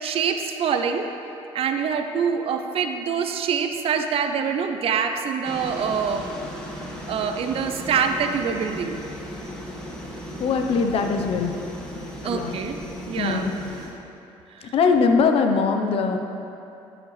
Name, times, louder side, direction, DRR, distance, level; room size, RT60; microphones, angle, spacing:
voice 1, 0.0-1.1 1.5-6.3 7.1-9.0 12.2-12.8 13.1-13.5 14.6-14.7, right 6 dB, 60° right, 6 dB, 0.5 m, -25 dB
sound 1, 5.4-13.9, equal, 5° left, 1.4 m, -36 dB
voice 2, 10.4-11.5 12.2-12.5 13.2-13.5 14.7-16.2, left 5 dB, 60° left, 5 dB, 0.7 m, -21 dB
12.0 x 5.0 x 3.2 m, 2.8 s
supercardioid pair, 80°, 11 cm